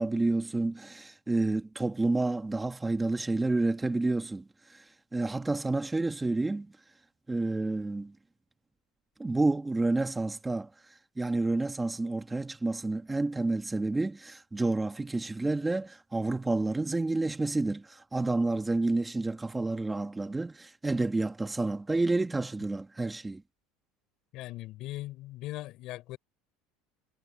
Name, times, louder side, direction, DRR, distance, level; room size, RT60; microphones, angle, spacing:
voice 1, 0.0-4.4 4.7-4.8 5.1-6.7 7.3-8.1 9.2-10.7 11.2-23.4, right 2 dB, 10° right, 1.5 m, -29 dB
voice 2, 24.3-26.2, left 17 dB, 50° left, 4.4 m, -39 dB
cardioid pair, 145°, 0 cm